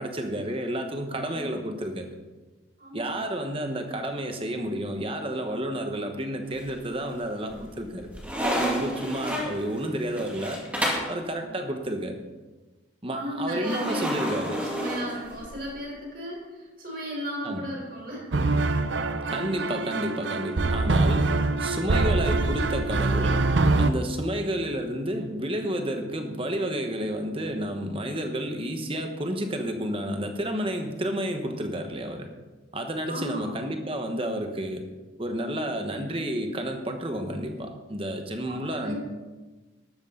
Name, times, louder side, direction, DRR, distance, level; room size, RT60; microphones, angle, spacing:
voice 1, 0.0-2.1 2.9-8.1 8.4-10.6 11.1-12.1 13.0-14.6 17.4-17.6 19.3-21.3 21.6-23.4 23.8-32.3 32.7-34.8 35.2-39.0, right 1 dB, 30° right, 5 dB, 1.3 m, -31 dB
voice 2, 1.1-1.5 2.8-3.2 11.4-11.5 13.1-18.3 33.1-33.6 38.4-39.0, equal, 50° right, -2 dB, 4.6 m, -36 dB
sound 1, 6.5-7.1 7.5-11.2 13.6-15.7, equal, 5° right, 2.3 m, -31 dB
sound 2, 18.3-23.9, right 2 dB, 70° right, 0.7 m, -24 dB
13.5 x 12.0 x 4.0 m, 1.2 s
head